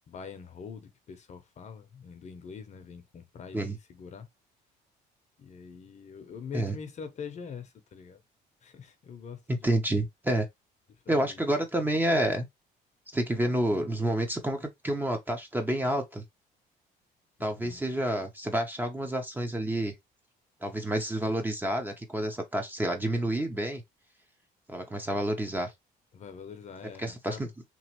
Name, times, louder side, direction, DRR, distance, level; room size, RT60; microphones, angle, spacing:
voice 1, 0.1-4.3 5.4-8.2 8.6-9.8 11.0-11.4 17.4-17.8 26.1-27.5, left 6 dB, 45° left, 0.7 m, -44 dB
voice 2, 9.5-10.5 11.1-12.5 13.1-16.2 17.4-19.9 20.6-23.8 24.7-25.7 27.0-27.5, right 1 dB, 10° right, 0.7 m, -29 dB
3.0 x 2.5 x 2.9 m
cardioid pair, 110°, 17 cm